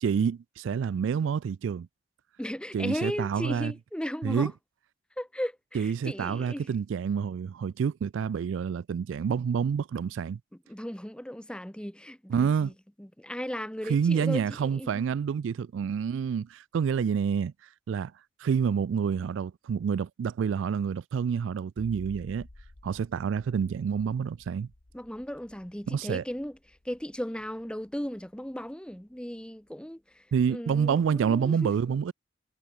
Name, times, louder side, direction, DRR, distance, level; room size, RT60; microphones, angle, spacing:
voice 1, 0.0-1.9 2.7-3.7 4.2-4.5 5.7-10.4 12.3-12.7 13.8-17.5 17.9-18.1 18.4-22.5 22.8-24.7 25.9-26.2 30.3-32.1, right 7 dB, 80° right, 0.3 m, -28 dB
voice 2, 2.4-4.5 5.2-6.7 10.7-12.7 13.0-15.0 17.0-17.1 24.9-26.6 26.8-30.2 30.5-31.7, equal, 5° left, 1.1 m, -36 dB
sound 1, 21.8-29.0, left 1 dB, 65° left, 1.4 m, -53 dB
head